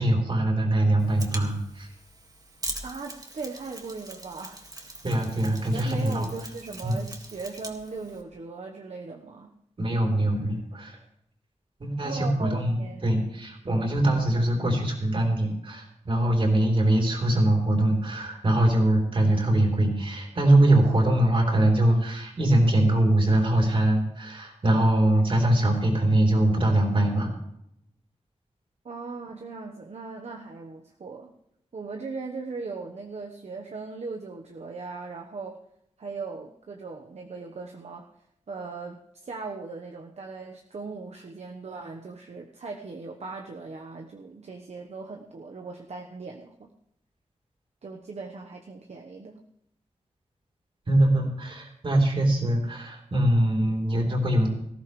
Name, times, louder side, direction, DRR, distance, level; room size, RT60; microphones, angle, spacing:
voice 1, 0.0-1.9 5.0-6.3 6.8-7.0 9.8-11.0 11.8-27.3 50.9-54.5, right 1 dB, 45° right, 1 dB, 3.7 m, -23 dB
Mechanisms, 1.0-8.2, right 2 dB, 30° right, 2.0 m, -42 dB
voice 2, 2.8-5.0 5.7-9.5 12.0-13.1 28.8-31.3 31.7-35.6 36.0-38.1 38.5-46.7 47.8-49.4, right 4 dB, 65° right, 2 dB, 1.2 m, -39 dB
19.0 x 14.5 x 3.3 m, 0.76 s
wide cardioid pair, 105°, 12 cm